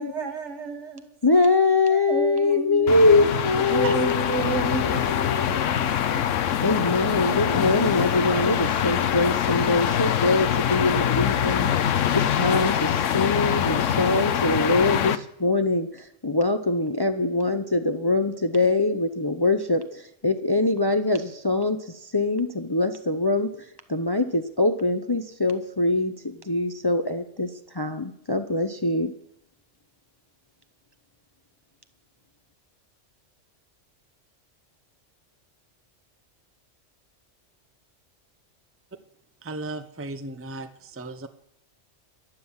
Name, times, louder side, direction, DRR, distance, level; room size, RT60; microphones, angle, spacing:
voice 1, 0.0-1.1 1.9-6.4, right 2 dB, 70° right, 1.7 m, -31 dB
voice 2, 1.2-5.7 6.6-11.7 12.1-15.9 16.2-19.8 20.2-21.8 22.1-23.5 23.9-26.1 26.5-27.5 27.8-29.1, left 2 dB, 25° left, 0.6 m, -23 dB
sound 1, 2.9-15.2, left 9 dB, 90° left, 1.1 m, -24 dB
voice 3, 39.4-41.3, right 3 dB, 15° right, 0.7 m, -35 dB
11.5 x 11.5 x 7.3 m
omnidirectional pair, 1.3 m